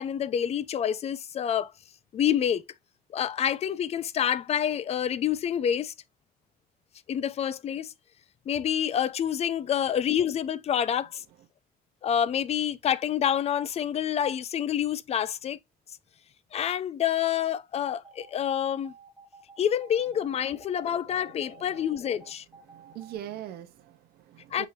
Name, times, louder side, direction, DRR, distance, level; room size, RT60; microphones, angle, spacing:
voice 1, 0.0-1.7 2.1-2.6 3.1-5.9 7.1-7.9 8.5-11.2 12.0-15.6 16.5-18.9 19.6-22.4 24.5-24.7, left 9 dB, 40° left, 0.4 m, -27 dB
sound 1, 17.9-23.2, right 5 dB, 5° right, 1.1 m, -52 dB
voice 2, 22.6-24.7, right 11 dB, 65° right, 0.6 m, -42 dB
6.1 x 2.8 x 2.5 m
cardioid pair, 110°, 17 cm